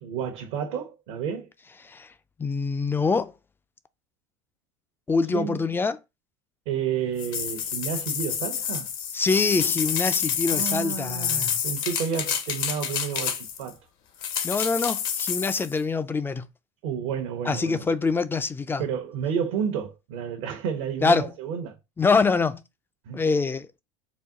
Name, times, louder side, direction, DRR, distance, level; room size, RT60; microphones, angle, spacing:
voice 1, 0.0-1.5 5.3-5.6 6.7-8.9 10.5-13.8 16.8-17.9 18.8-21.8 23.1-23.2, right 7 dB, 70° right, 0.9 m, -31 dB
voice 2, 2.4-3.3 5.1-6.0 9.1-11.6 14.4-16.5 17.4-18.9 21.0-21.3 22.0-22.6 23.1-23.8, left 4 dB, 15° left, 0.4 m, -25 dB
sound 1, 7.2-13.7 14.2-15.7, left 8 dB, 60° left, 0.9 m, -28 dB
4.1 x 2.3 x 3.7 m
hypercardioid pair, 95°, 16 cm